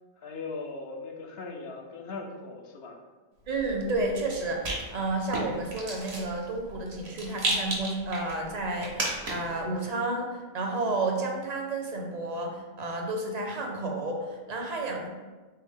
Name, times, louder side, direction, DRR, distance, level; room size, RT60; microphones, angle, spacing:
voice 1, 0.2-3.0, left 3 dB, 70° left, 3 dB, 0.8 m, -39 dB
voice 2, 3.5-15.1, right 2 dB, 45° right, 1 dB, 0.6 m, -31 dB
Rattle, 3.5-9.6, right 2 dB, 75° right, 1.2 m, -35 dB
3.5 x 3.4 x 3.6 m, 1.3 s
omnidirectional pair, 1.1 m